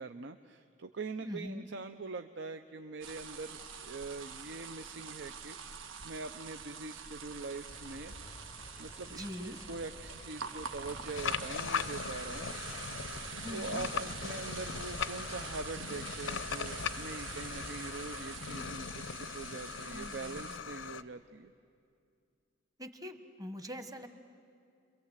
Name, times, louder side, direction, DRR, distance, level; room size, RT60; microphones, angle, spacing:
voice 1, 0.0-5.8 6.0-8.1 8.8-12.7 13.5-21.5, right 3 dB, 65° right, 8 dB, 0.7 m, -43 dB
voice 2, 1.2-1.6 9.2-9.6 13.4-13.8 19.8-20.5 22.8-24.1, left 1 dB, 20° right, 8 dB, 1.1 m, -43 dB
sound 1, 3.0-20.6, right 6 dB, 85° right, 1.6 m, -46 dB
sound 2, 7.7-19.1, left 2 dB, 25° left, 0.6 m, -50 dB
sound 3, 11.1-21.0, left 6 dB, 80° left, 0.6 m, -40 dB
30.0 x 23.0 x 8.1 m, 2.4 s
head